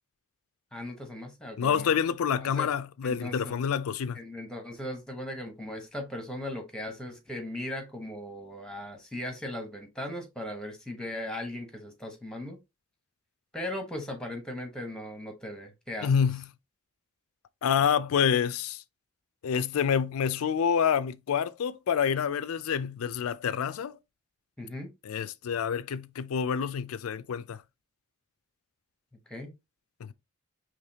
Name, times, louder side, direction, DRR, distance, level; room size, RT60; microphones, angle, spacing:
voice 1, 0.7-1.9 2.4-2.7 3.0-3.5 4.1-12.6 13.5-16.1 24.6-24.9 29.3-29.5, left 1 dB, 5° left, 0.9 m, -38 dB
voice 2, 1.6-4.2 16.0-16.5 17.6-18.8 19.4-24.0 25.0-27.6 30.0-30.1, left 7 dB, 75° left, 0.4 m, -27 dB
4.9 x 3.1 x 2.7 m
head